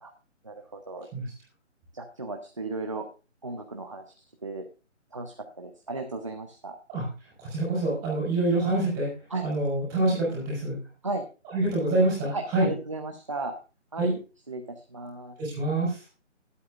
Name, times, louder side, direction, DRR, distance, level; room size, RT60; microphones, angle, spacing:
voice 1, 0.4-1.1 1.9-3.0 3.4-4.0 4.4-4.6 5.1-6.8 9.3-9.4 11.0-11.2 12.3-13.5 13.9-14.1 14.5-15.3, right 3 dB, 25° right, 4 dB, 0.8 m, -35 dB
voice 2, 7.4-9.1 9.4-10.8 11.5-12.7 14.0-14.2 15.4-16.0, right 2 dB, 10° right, -5 dB, 4.7 m, -26 dB
20.0 x 8.4 x 2.5 m, 0.32 s
figure-of-eight pair, 170°, 37 cm